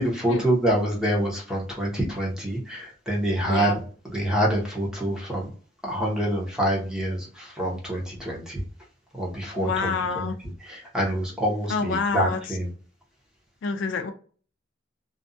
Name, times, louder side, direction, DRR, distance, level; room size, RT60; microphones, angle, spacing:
voice 1, 0.0-3.7 4.0-5.5 5.8-8.6 9.1-10.3 10.6-12.7, right 1 dB, 5° right, -3 dB, 0.8 m, -26 dB
voice 2, 9.6-10.3 11.7-12.4 13.6-14.1, left 4 dB, 75° left, 7 dB, 0.4 m, -27 dB
2.5 x 2.2 x 2.5 m, 0.42 s
head